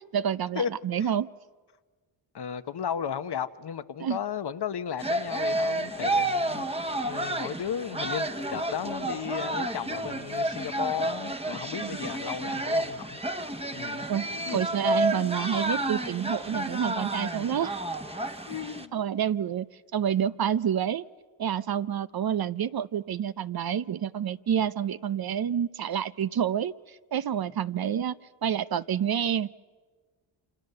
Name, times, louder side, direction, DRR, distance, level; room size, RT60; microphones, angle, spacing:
voice 1, 0.1-1.3 4.0-4.2 11.8-12.0 14.1-17.7 18.9-19.7 19.9-21.0 21.4-29.5, right 9 dB, 45° right, 15 dB, 0.7 m, -28 dB
voice 2, 2.3-6.6 7.0-13.2 13.7-14.1 14.5-14.6 18.5-18.9, left 8 dB, 50° left, 11 dB, 1.1 m, -34 dB
sound 1, 5.0-18.9, right 1 dB, 10° right, 1.3 m, -30 dB
28.0 x 26.0 x 6.8 m, 1.4 s
cardioid pair, 60°, 50 cm